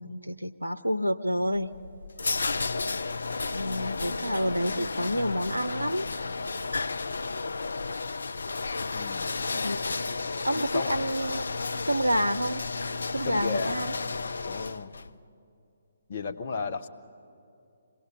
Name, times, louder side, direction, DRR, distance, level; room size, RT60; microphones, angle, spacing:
voice 1, 0.0-1.7 3.5-6.1 7.4-7.5 9.5-10.1 10.4-11.4 11.9-12.6 13.1-13.9, equal, 90° right, 14 dB, 0.6 m, -29 dB
sound 1, 1.5-15.1, left 3 dB, 65° left, 0.5 m, -32 dB
Wind instrument woodwind instrument, 2.1-6.9, right 1 dB, 25° left, 3.1 m, -50 dB
voice 2, 4.2-4.6 8.9-9.3 10.6-11.0 13.2-14.1 14.4-15.0 16.1-16.9, left 4 dB, 45° left, 7 dB, 1.0 m, -34 dB
25.5 x 18.0 x 7.1 m, 2.6 s
figure-of-eight pair, 135°, 0 cm